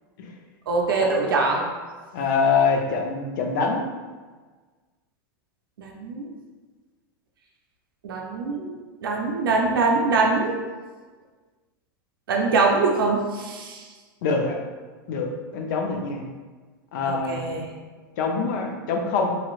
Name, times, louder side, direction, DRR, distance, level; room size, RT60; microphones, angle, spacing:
voice 1, 0.7-1.7 5.8-6.3 8.0-10.6 12.3-13.9 17.1-17.7, right 3 dB, 80° right, 0 dB, 0.5 m, -23 dB
voice 2, 2.1-3.9 14.2-14.6 15.1-16.2 16.9-17.5 18.2-19.3, left 4 dB, 60° left, 2 dB, 0.6 m, -24 dB
3.0 x 2.9 x 2.4 m, 1.4 s
hypercardioid pair, 105°, 12 cm